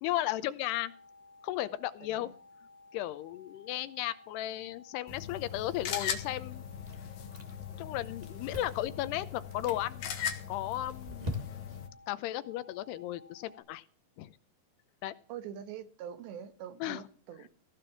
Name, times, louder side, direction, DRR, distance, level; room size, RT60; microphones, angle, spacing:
voice 1, 0.0-0.9 1.4-2.3 2.9-6.6 7.8-10.1 10.5-11.3 12.1-13.8 14.2-14.3 15.0-15.2 16.8-17.0, left 14 dB, 80° left, 2.7 m, -35 dB
sound 1, 0.7-13.6, left 2 dB, 35° right, 3.2 m, -57 dB
sound 2, 5.1-11.9, left 8 dB, 60° left, 3.2 m, -40 dB
Chewing mastication, 6.8-7.8 8.0-8.9 9.4-9.8 10.4-11.8, left 1 dB, 15° right, 1.4 m, -42 dB
voice 2, 15.3-17.5, right 9 dB, 80° right, 3.6 m, -44 dB
16.5 x 6.6 x 7.1 m
omnidirectional pair, 5.0 m